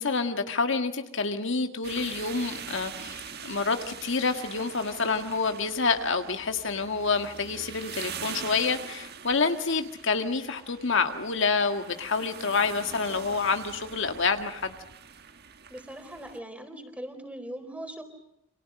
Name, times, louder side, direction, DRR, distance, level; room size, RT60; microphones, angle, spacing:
voice 1, 0.0-14.7, left 4 dB, 65° left, 6 dB, 1.8 m, -28 dB
sound 1, 1.8-16.4, right 7 dB, 55° right, 1.6 m, -43 dB
voice 2, 15.7-18.0, right 1 dB, 5° right, 6 dB, 4.1 m, -40 dB
29.5 x 26.5 x 6.5 m, 0.80 s
head